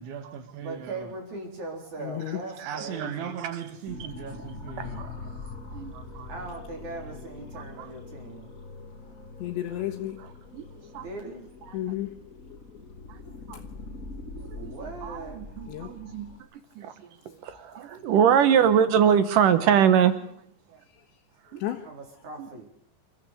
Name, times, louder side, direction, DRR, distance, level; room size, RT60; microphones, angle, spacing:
voice 1, 0.0-1.1 2.7-5.2, right 8 dB, 85° right, 4.5 m, -38 dB
voice 2, 0.6-3.4 6.3-8.5 11.0-11.5 14.4-15.6 18.4-18.6 21.8-22.7, right 3 dB, 40° right, 5.0 m, -40 dB
voice 3, 2.0-2.4 9.4-10.2 11.7-12.1 15.7-15.9 21.6-21.8, left 13 dB, 80° left, 3.4 m, -32 dB
voice 4, 2.6-3.3 4.8-5.1 5.7-6.3 7.5-7.9 10.2-10.3 10.5-10.6 10.9-11.0 11.7-11.8 13.1-13.2 13.5-13.6 14.5-14.7 15.0-16.3 16.8-16.9 17.3-20.2 21.5-21.6 22.4-22.5, right 8 dB, 70° right, 2.1 m, -24 dB
sound 1, 3.9-16.4, left 3 dB, 25° left, 1.9 m, -43 dB
28.0 x 14.0 x 6.7 m
omnidirectional pair, 5.2 m